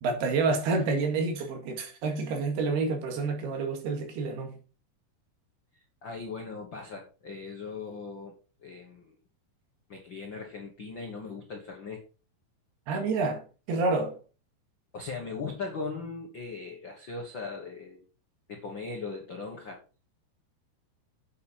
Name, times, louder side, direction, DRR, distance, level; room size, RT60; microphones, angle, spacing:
voice 1, 0.0-4.6 12.9-13.4 13.7-14.2, right 3 dB, 75° right, 3.8 m, -28 dB
voice 2, 6.0-9.1 9.9-12.1 14.9-18.1 18.5-19.8, left 4 dB, 60° left, 1.2 m, -39 dB
8.6 x 7.9 x 4.4 m
omnidirectional pair, 4.8 m